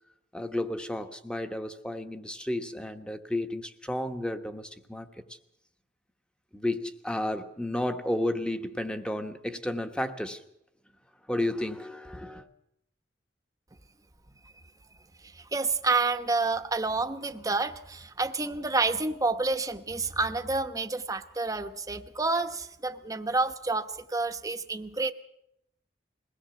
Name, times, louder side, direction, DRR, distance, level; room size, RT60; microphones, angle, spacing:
voice 1, 0.3-5.2 6.5-10.4 11.3-12.5, left 1 dB, 5° left, 1.2 m, -32 dB
voice 2, 15.2-25.1, right 3 dB, 20° right, 1.0 m, -29 dB
22.0 x 17.0 x 7.0 m
head